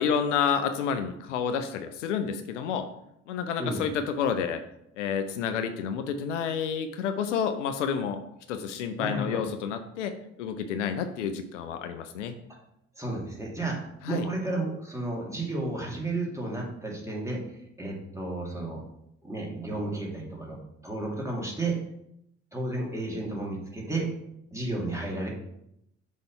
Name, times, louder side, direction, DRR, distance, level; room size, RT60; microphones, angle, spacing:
voice 1, 0.0-2.9 3.3-4.6 5.0-8.2 8.5-12.3 14.0-14.3, left 7 dB, 80° left, 9 dB, 0.5 m, -29 dB
voice 2, 9.0-9.4 13.0-13.8 14.1-17.4 17.8-18.8 19.2-20.6 20.8-21.8 22.5-24.1 24.5-25.3, right 2 dB, 10° right, -2 dB, 2.3 m, -32 dB
6.3 x 3.3 x 5.4 m, 0.79 s
figure-of-eight pair, 45°, 36 cm